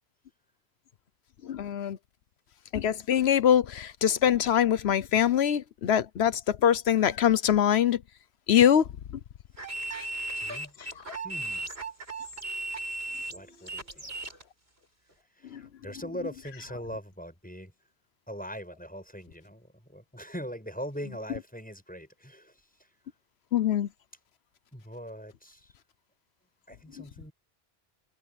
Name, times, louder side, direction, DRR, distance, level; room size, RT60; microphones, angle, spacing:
voice 1, 1.4-2.0 2.7-8.0 8.5-8.8 10.8-10.9 15.5-15.6 23.5-23.9, left 9 dB, 80° left, 1.0 m, -23 dB
sound 1, 9.6-14.4, right 2 dB, 75° right, 5.7 m, -36 dB
voice 2, 10.3-10.7 11.2-11.7 13.3-14.2 15.3-17.7 18.3-22.9 24.7-25.7 26.7-27.3, equal, 10° left, 5.9 m, -41 dB
omnidirectional pair, 1.1 m